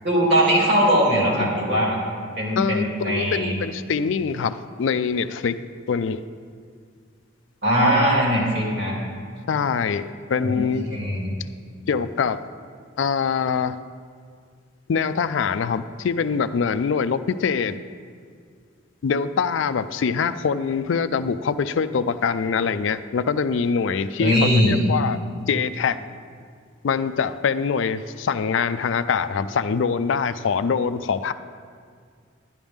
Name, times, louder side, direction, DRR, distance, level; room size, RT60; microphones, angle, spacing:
voice 1, 0.0-2.0 2.4-3.6 7.6-8.9 10.4-11.3 24.2-24.8, equal, 60° right, -4 dB, 2.8 m, -20 dB
voice 2, 2.6-5.6 5.9-6.2 9.5-10.8 11.9-12.4 13.0-13.8 14.9-17.8 19.0-25.2 25.5-26.0 26.8-31.3, left 6 dB, 75° left, 12 dB, 0.4 m, -24 dB
11.5 x 10.5 x 3.6 m, 2.1 s
head